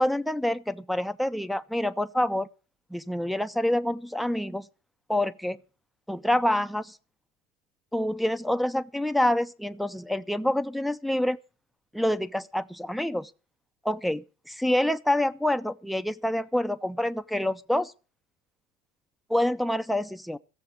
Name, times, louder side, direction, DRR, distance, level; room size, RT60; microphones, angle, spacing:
voice 1, 0.0-2.5 2.9-4.7 5.1-5.6 6.1-7.0 7.9-11.4 11.9-13.3 13.8-17.9 19.3-20.4, left 1 dB, ahead, 0.7 m, -27 dB
15.5 x 7.5 x 8.4 m
figure-of-eight pair, 65°, 40 cm